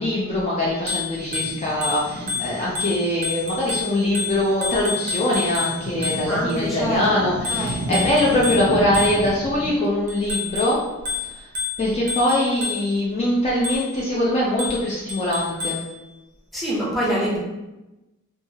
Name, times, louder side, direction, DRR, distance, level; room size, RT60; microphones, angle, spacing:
voice 1, 0.0-10.8 11.3-11.5 11.8-15.8, left 1 dB, 30° left, -6 dB, 0.4 m, -22 dB
Bicycle bell, 0.7-6.6 7.4-9.5 10.1-13.1 13.6-14.1 14.6-15.9, left 5 dB, 35° right, 0.5 m, -30 dB
sound 1, 1.2-9.7, right 1 dB, 85° right, 0.4 m, -33 dB
voice 2, 6.3-7.0 7.5-8.0 16.5-17.4, right 1 dB, ahead, -7 dB, 0.7 m, -25 dB
2.7 x 2.3 x 2.7 m, 1.0 s
head